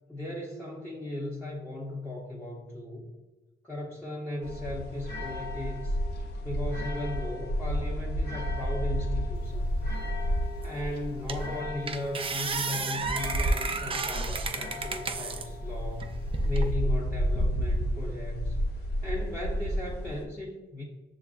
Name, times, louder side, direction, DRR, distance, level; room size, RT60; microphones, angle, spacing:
voice 1, 0.1-3.1 3.6-6.0 6.4-9.8 10.6-18.6 19.0-20.8, left 1 dB, 10° left, -4 dB, 0.7 m, -37 dB
sound 1, 4.4-20.3, equal, 55° left, 0.8 m, -32 dB
sound 2, 10.6-10.7 11.3-11.5 11.9-15.5 16.0-16.7, right 3 dB, 25° right, 0.4 m, -31 dB
6.4 x 2.4 x 2.4 m, 1.2 s
cardioid pair, 90°, 20 cm